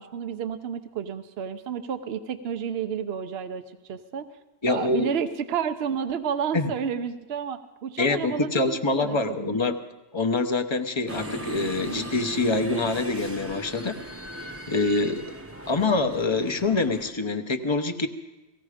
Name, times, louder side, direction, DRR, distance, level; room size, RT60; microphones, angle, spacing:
voice 1, 0.0-3.6 3.9-4.3 4.7-9.6, right 7 dB, 65° right, 10 dB, 1.0 m, -31 dB
voice 2, 4.6-5.1 6.5-6.7 8.0-9.8 10.1-14.0 14.7-15.2 15.7-18.1, left 3 dB, 25° left, 6 dB, 0.9 m, -25 dB
sound 1, 11.1-17.1, right 1 dB, 15° right, 1.0 m, -38 dB
18.5 x 16.0 x 5.0 m, 1.1 s
omnidirectional pair, 1.1 m